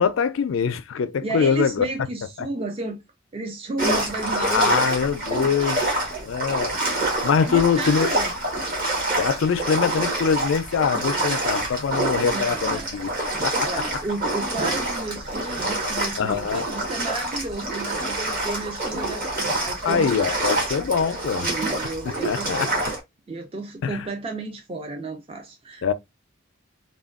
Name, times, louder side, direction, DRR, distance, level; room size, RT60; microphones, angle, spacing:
voice 1, 0.0-1.9 2.4-2.5 4.3-6.8 7.2-8.1 9.2-13.1 13.4-13.7 16.2-16.6 19.9-21.5 22.2-22.9 23.8-24.1 25.8-25.9, left 6 dB, 70° left, 0.4 m, -23 dB
voice 2, 1.2-3.0 3.3-4.9 5.3-5.7 6.1-6.3 7.1-8.3 11.0-11.4 11.9-20.4 21.4-22.8 23.3-25.9, right 2 dB, 30° right, 0.4 m, -33 dB
sound 1, 3.8-23.0, right 2 dB, 45° right, 1.1 m, -27 dB
3.4 x 2.2 x 2.4 m
head